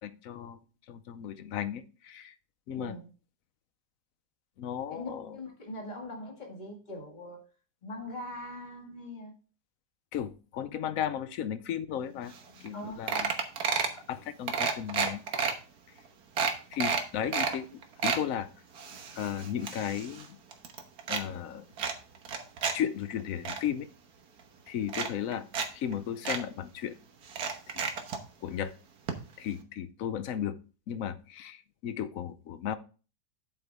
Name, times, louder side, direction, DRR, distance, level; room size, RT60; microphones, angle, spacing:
voice 1, 0.0-0.6 0.9-2.3 2.7-2.9 4.6-5.4 10.1-13.3 14.1-15.2 16.7-18.5 19.2-20.4 21.1-21.6 22.7-23.9 24.7-25.5 25.7-27.0 27.7-27.8 28.4-28.7 29.4-30.6 30.9-32.8, left 9 dB, 65° left, 0.9 m, -35 dB
voice 2, 2.7-3.1 4.9-7.4 7.8-9.3 12.7-13.1, left 1 dB, 25° left, 2.0 m, -42 dB
sound 1, 12.4-12.5 12.7-12.8 13.1-14.0 14.5-15.5 16.0-16.1 16.4-17.6 17.8-18.2 18.8-20.3 20.5-21.2 21.8-22.8 23.1-23.6 24.4-24.5 24.9-25.7 25.9-26.0 26.3-26.4 27.3-28.2 29.1-29.2 29.5-29.6, right 5 dB, 65° right, 1.6 m, -30 dB
8.1 x 8.0 x 3.5 m
omnidirectional pair, 1.8 m